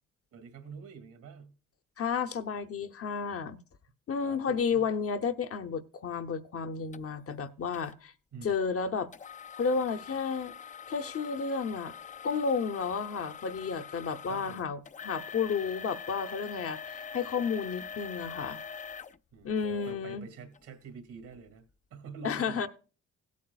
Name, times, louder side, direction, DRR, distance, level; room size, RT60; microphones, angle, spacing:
voice 1, 0.3-1.5 4.2-4.8 8.3-8.6 14.3-14.6 19.3-21.6 21.9-22.7, right 6 dB, 75° right, 2.3 m, -46 dB
voice 2, 2.0-3.6 4.1-8.1 8.4-9.1 9.6-10.5 10.9-11.9 12.2-18.6 19.4-20.3 22.2-22.7, left 5 dB, 50° left, 0.8 m, -32 dB
sound 1, 6.9-7.0 7.7-8.0 9.1-20.0 20.5-20.6 21.2-21.4, left 7 dB, 25° left, 0.4 m, -44 dB
17.0 x 8.4 x 2.3 m
cardioid pair, 90°, 30 cm